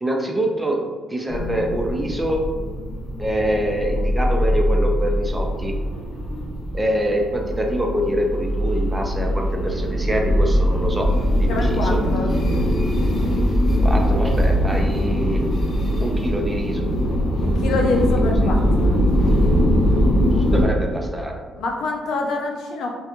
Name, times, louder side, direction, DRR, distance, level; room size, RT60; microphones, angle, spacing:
voice 1, 0.0-2.5 3.2-5.8 6.7-11.1 11.4-11.9 13.8-15.5 16.0-16.9 18.2-18.5 20.5-21.4, right 1 dB, 15° right, 1 dB, 0.5 m, -25 dB
sound 1, 1.3-20.6, equal, 45° left, 0.8 m, -21 dB
voice 2, 11.5-12.3 17.4-19.0 21.6-22.9, left 2 dB, 75° left, 1 dB, 0.5 m, -25 dB
3.3 x 2.3 x 2.9 m, 1.5 s
cardioid pair, 90°, 0 cm